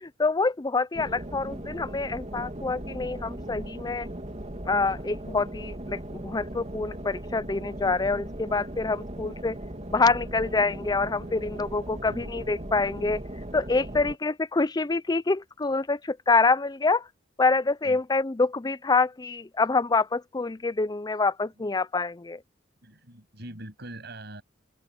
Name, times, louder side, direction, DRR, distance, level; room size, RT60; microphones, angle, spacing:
voice 1, 0.0-4.1 4.7-9.6 9.9-13.2 13.5-17.1 17.4-22.4, left 3 dB, 20° left, 0.5 m, -26 dB
sound 1, 0.9-14.2, right 1 dB, 35° right, 2.8 m, -38 dB
voice 2, 12.0-12.3 17.8-18.0 22.8-24.4, right 1 dB, 60° right, 7.9 m, -43 dB
open air
head